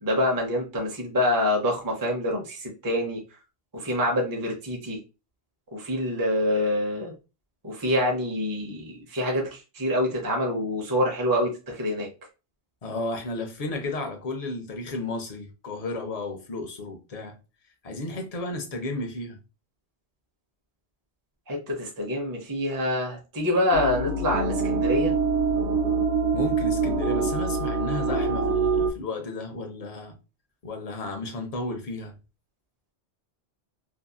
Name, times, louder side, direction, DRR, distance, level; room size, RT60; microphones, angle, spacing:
voice 1, 0.0-3.2 3.7-5.0 5.7-7.1 7.6-12.1 21.5-25.1, left 1 dB, 25° right, 0.5 m, -26 dB
voice 2, 12.8-17.4 17.8-19.4 26.3-30.1 30.6-32.2, left 2 dB, 45° left, 0.5 m, -33 dB
sound 1, 23.7-28.9, right 4 dB, 90° right, 0.9 m, -25 dB
2.7 x 2.5 x 2.3 m
omnidirectional pair, 1.1 m